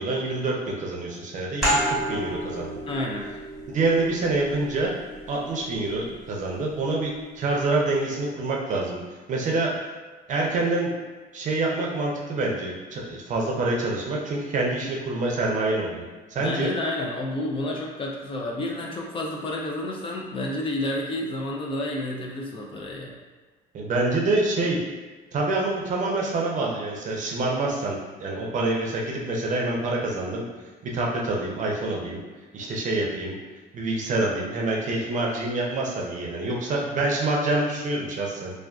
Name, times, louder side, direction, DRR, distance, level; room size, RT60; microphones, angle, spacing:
voice 1, 0.0-2.8 3.7-4.9 5.3-9.0 9.3-9.7 10.3-10.9 11.3-16.7 23.7-24.8 25.3-30.4 30.8-32.2 32.5-33.3 33.7-38.5, right 2 dB, 50° right, -2 dB, 0.6 m, -26 dB
sound 1, 1.6-6.9, equal, ahead, 1.2 m, -31 dB
voice 2, 2.9-3.3 16.4-23.2, left 1 dB, 30° left, -1 dB, 0.4 m, -30 dB
2.4 x 2.3 x 2.3 m, 1.4 s
cardioid pair, 110°, 17 cm